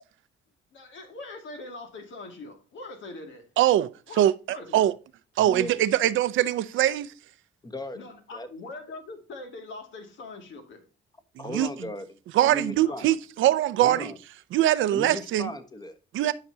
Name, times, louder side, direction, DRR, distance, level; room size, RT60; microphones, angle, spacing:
voice 1, 0.7-3.4 4.1-4.9 7.9-10.8 12.9-13.1, left 3 dB, 70° left, 2.3 m, -42 dB
voice 2, 3.6-3.9 4.2-4.9 5.4-7.1 11.5-11.7 12.3-14.1 14.5-15.5 16.1-16.3, right 13 dB, 80° right, 0.6 m, -22 dB
voice 3, 5.4-6.0 7.6-8.5 11.4-13.1 13.8-14.2 14.9-16.0 16.2-16.3, left 1 dB, 20° left, 1.3 m, -37 dB
10.5 x 5.9 x 2.7 m
cardioid pair, 90°, 20 cm